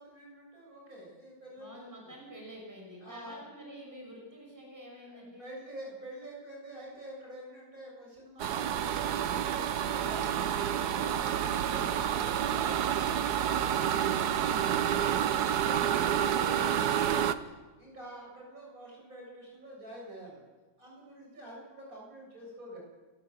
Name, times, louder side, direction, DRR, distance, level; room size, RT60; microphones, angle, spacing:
voice 1, 0.0-2.1 3.0-3.4 5.0-10.3 10.6-20.4 20.8-22.8, right 1 dB, 50° right, -2 dB, 8.0 m, -47 dB
voice 2, 1.6-5.5, equal, 10° right, -1 dB, 5.8 m, -48 dB
sound 1, 8.4-17.3, right 9 dB, 70° right, 1.4 m, -29 dB
29.0 x 14.5 x 7.9 m, 1.3 s
omnidirectional pair, 1.9 m